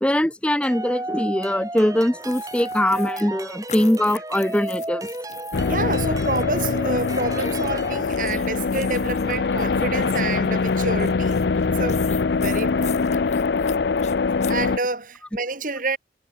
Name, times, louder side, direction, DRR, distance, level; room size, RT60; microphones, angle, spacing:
voice 1, 0.0-5.1, left 1 dB, 5° left, 0.6 m, -22 dB
sound 1, 0.6-8.0, right 1 dB, 20° right, 3.2 m, -33 dB
sound 2, 2.2-5.7 6.1-14.6, left 8 dB, 40° left, 2.4 m, -41 dB
sound 3, 5.5-14.8, left 4 dB, 70° left, 0.5 m, -23 dB
voice 2, 5.6-13.1 14.5-16.0, right 3 dB, 50° right, 3.8 m, -28 dB
head